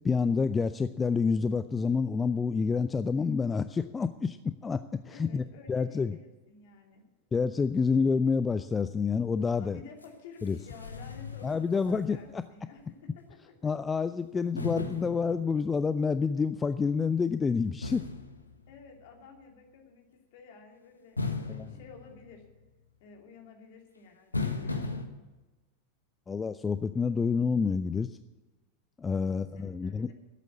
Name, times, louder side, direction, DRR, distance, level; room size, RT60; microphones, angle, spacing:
voice 1, 0.0-4.4 4.6-5.4 5.7-6.2 7.3-9.8 10.4-10.6 11.4-12.4 13.6-18.0 21.5-21.7 26.3-28.1 29.0-30.1, left 5 dB, 15° left, 12 dB, 0.4 m, -28 dB
voice 2, 5.1-7.0 9.6-13.7 18.7-22.5 23.0-25.1 29.1-30.1, left 5 dB, 50° left, 2 dB, 2.7 m, -52 dB
sound 1, 10.0-10.1 10.4-12.5 12.8-12.9 14.6-15.9 17.8-19.2 21.2-22.7 24.3-25.1, left 3 dB, 80° left, 1.2 m, -37 dB
12.5 x 8.3 x 8.3 m, 1.2 s
figure-of-eight pair, 90°, 0 cm